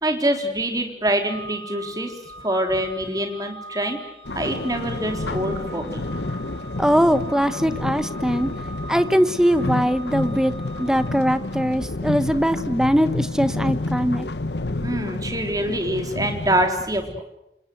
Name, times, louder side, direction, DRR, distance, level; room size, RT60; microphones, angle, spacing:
voice 1, 0.0-2.1 2.4-4.0 4.3-6.0 14.8-17.2, right 1 dB, 20° right, 5 dB, 3.8 m, -25 dB
Organ, 1.2-12.0, right 1 dB, 85° right, 6.0 m, -42 dB
sound 1, 4.2-16.7, left 2 dB, 75° left, 1.1 m, -29 dB
voice 2, 6.8-8.5 8.9-10.5 10.8-14.3, equal, 5° right, 11 dB, 1.1 m, -21 dB
28.0 x 26.5 x 8.0 m, 0.88 s
head